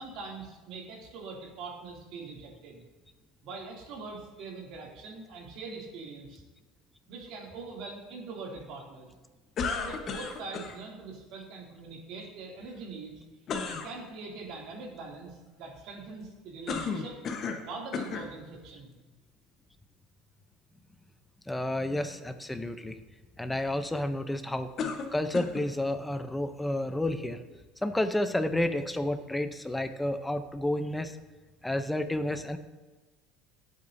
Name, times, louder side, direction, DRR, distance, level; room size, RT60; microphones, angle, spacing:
voice 1, 0.0-2.8 3.4-6.4 7.1-9.1 9.8-13.2 13.7-17.2 17.6-18.9, right 3 dB, 55° right, -1 dB, 2.7 m, -43 dB
sound 1, 9.6-10.7 13.5-13.9 16.7-17.7 17.9-18.3 19.1-19.2 24.8-25.7, left 5 dB, 35° left, 1.1 m, -33 dB
voice 2, 21.5-23.0 23.4-24.7 25.1-31.2 31.6-32.6, left 1 dB, 5° left, 9 dB, 0.6 m, -31 dB
18.0 x 8.2 x 2.7 m, 1.2 s
cardioid pair, 145°, 0 cm